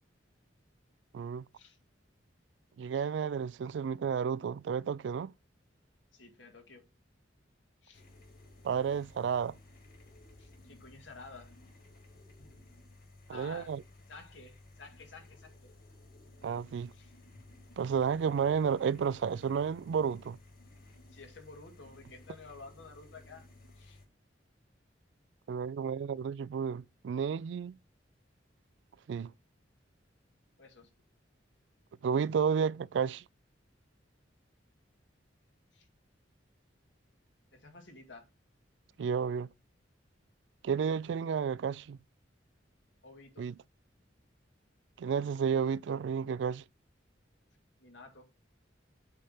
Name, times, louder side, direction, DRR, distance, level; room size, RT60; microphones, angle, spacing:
voice 1, 1.1-1.4 2.8-5.3 8.6-9.5 13.3-13.8 16.4-16.9 17.8-20.4 25.5-27.8 29.1-29.3 32.0-33.2 39.0-39.5 40.6-42.0 43.4-43.5 45.0-46.6, right 6 dB, 70° right, 0.3 m, -31 dB
voice 2, 6.1-6.8 7.8-8.0 10.4-11.5 13.3-13.8 14.1-15.7 16.9-17.1 21.1-23.4 23.8-24.0 30.6-30.9 35.7-35.9 37.5-38.3 43.0-43.5 47.8-48.3, left 3 dB, 80° left, 2.1 m, -52 dB
sound 1, 7.9-24.1, left 2 dB, 55° left, 2.2 m, -56 dB
8.2 x 3.4 x 5.6 m
head